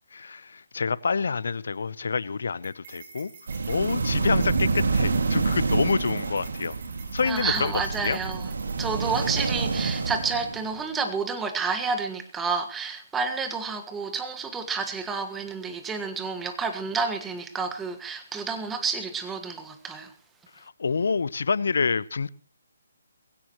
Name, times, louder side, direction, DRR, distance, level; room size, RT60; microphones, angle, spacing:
voice 1, 0.1-3.3 3.7-6.8 7.1-7.7 8.0-8.2 20.8-22.3, left 5 dB, 70° left, 0.8 m, -27 dB
sound 1, 2.6-9.1, right 6 dB, 35° right, 5.5 m, -49 dB
sound 2, 3.5-10.8, right 4 dB, 70° right, 2.3 m, -27 dB
voice 2, 7.2-8.5 8.8-20.1, right 5 dB, 10° right, 1.6 m, -30 dB
21.5 x 16.5 x 3.1 m
hypercardioid pair, 150°, 0 cm